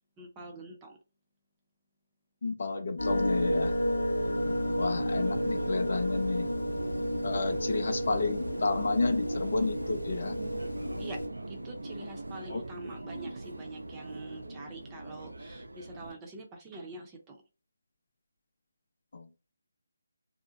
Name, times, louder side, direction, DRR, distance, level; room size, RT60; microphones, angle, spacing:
voice 1, 0.2-1.0 11.0-11.2 11.5-17.4, right 2 dB, 15° right, 0.6 m, -45 dB
voice 2, 2.4-3.8 4.8-6.5 7.2-10.4 12.5-12.6 19.1-19.3, left 3 dB, 60° left, 0.5 m, -31 dB
sound 1, 3.0-11.3, equal, 85° left, 0.9 m, -31 dB
Subway metro underground, 4.2-16.1, right 2 dB, 85° right, 0.4 m, -41 dB
2.7 x 2.1 x 2.3 m
figure-of-eight pair, 155°, 0 cm